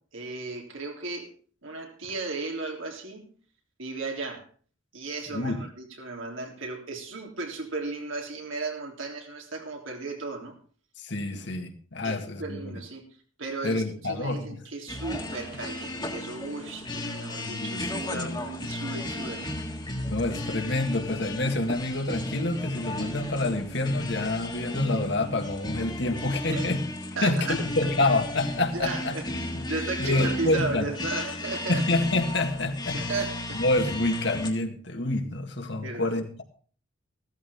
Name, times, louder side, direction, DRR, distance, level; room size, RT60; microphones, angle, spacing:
voice 1, 0.1-1.3 1.6-3.3 3.8-4.5 4.9-10.5 12.0-13.1 13.4-19.5 26.5-26.7 27.1-27.6 28.7-31.8 32.9-33.6 35.8-36.1, right 3 dB, 80° right, 2 dB, 3.4 m, -35 dB
voice 2, 5.3-5.6 11.0-12.8 13.6-14.6 17.4-18.4 20.1-26.8 27.2-29.2 30.0-30.9 31.7-33.0 33.5-36.4, left 2 dB, 60° left, 5 dB, 1.9 m, -27 dB
sound 1, 14.9-34.5, left 1 dB, 20° left, 1.6 m, -35 dB
15.0 x 14.0 x 3.6 m, 0.42 s
head